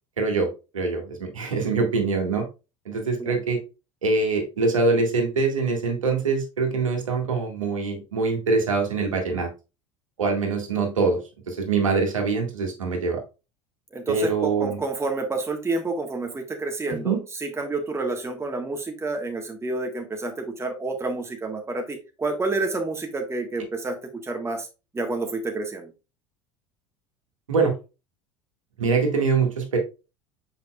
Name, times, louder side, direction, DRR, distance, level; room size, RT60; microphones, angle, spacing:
voice 1, 0.2-2.5 2.9-3.6 4.0-9.5 10.2-11.2 11.5-13.2 14.1-14.8 16.9-17.2 27.5-27.7 28.8-29.8, right 4 dB, 80° right, 3 dB, 1.9 m, -24 dB
voice 2, 13.9-24.7 24.9-25.9, right 3 dB, 15° right, 3 dB, 1.5 m, -29 dB
7.6 x 5.5 x 2.4 m, 0.29 s
figure-of-eight pair, 75°, 17 cm